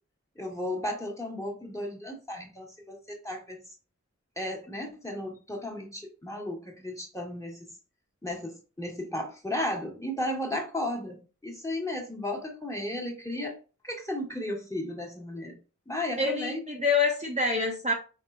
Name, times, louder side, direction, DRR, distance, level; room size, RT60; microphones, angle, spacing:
voice 1, 0.3-3.6 4.4-7.7 8.2-13.6 13.8-15.6 15.9-16.6, left 1 dB, 10° left, 0 dB, 1.6 m, -34 dB
voice 2, 16.2-17.9, left 3 dB, 25° right, -1 dB, 0.9 m, -26 dB
4.7 x 3.6 x 2.6 m, 0.35 s
wide cardioid pair, 45°, 30 cm